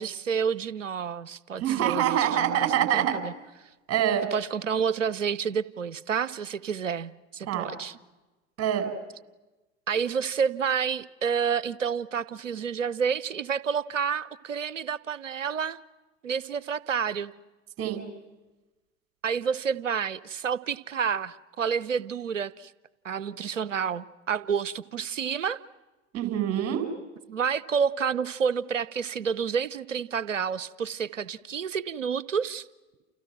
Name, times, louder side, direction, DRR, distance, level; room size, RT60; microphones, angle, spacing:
voice 1, 0.0-3.3 4.3-8.0 9.9-15.8 16.2-17.3 19.2-22.7 23.0-25.6 27.3-32.7, right 6 dB, 85° right, 19 dB, 0.9 m, -29 dB
voice 2, 1.6-3.2 3.9-4.2 7.5-7.7 8.6-8.9 17.8-18.0 26.1-26.8, right 10 dB, 40° right, 6 dB, 5.5 m, -25 dB
29.5 x 29.5 x 6.0 m, 1.1 s
figure-of-eight pair, 75°, 37 cm